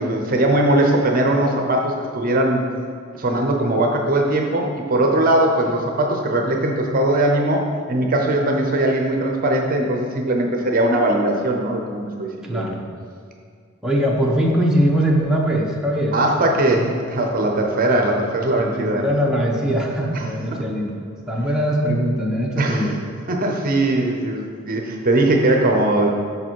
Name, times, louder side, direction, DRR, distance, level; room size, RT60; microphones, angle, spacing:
voice 1, 0.0-2.6 3.2-12.7 16.1-19.0 20.1-20.6 22.6-22.8 23.3-26.1, right 1 dB, 45° right, 2 dB, 0.7 m, -20 dB
voice 2, 12.5-12.8 13.8-16.2 18.6-20.9 21.3-22.9, equal, 5° right, -3 dB, 0.9 m, -21 dB
6.8 x 5.4 x 4.6 m, 2.1 s
head